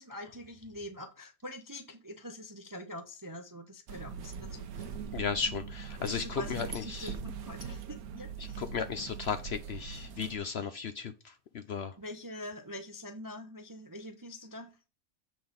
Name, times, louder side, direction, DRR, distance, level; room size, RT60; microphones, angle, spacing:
voice 1, 0.0-4.9 6.0-8.6 12.0-14.7, left 1 dB, 25° right, 0.4 m, -44 dB
sound 1, 3.9-10.4, right 6 dB, 85° right, 1.2 m, -42 dB
voice 2, 5.1-7.1 8.4-11.9, left 6 dB, 60° left, 0.7 m, -35 dB
7.8 x 3.9 x 5.1 m
omnidirectional pair, 1.5 m